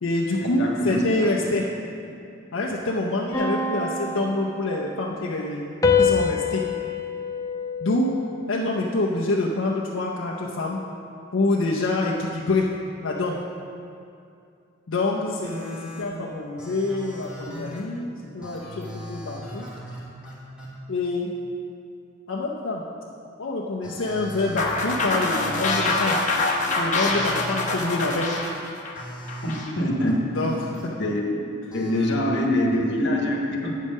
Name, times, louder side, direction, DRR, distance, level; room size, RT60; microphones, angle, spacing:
voice 1, 0.0-1.7 2.5-5.6 6.0-6.6 7.8-8.2 8.5-10.8 11.3-12.7 13.0-13.4 14.9-19.7 20.9-21.4 22.3-22.8 23.4-26.2 26.8-28.3 30.3-30.9 31.2-31.3, left 2 dB, 80° left, -3 dB, 0.6 m, -26 dB
voice 2, 0.6-1.0 29.4-30.2 31.0-31.2 31.7-33.8, left 1 dB, 55° left, 0 dB, 1.2 m, -24 dB
sound 1, 3.3-5.1 5.8-8.5, left 5 dB, 15° left, 0.5 m, -25 dB
sound 2, 15.4-16.0 16.6-17.8 18.4-20.7 23.8-24.8 25.1-25.9 27.1-27.8 28.9-29.6 29.9-30.8 31.7-32.1, equal, 5° right, 1.4 m, -39 dB
sound 3, 24.6-29.7, left 2 dB, 35° left, 0.9 m, -25 dB
8.4 x 5.4 x 6.4 m, 2.5 s
head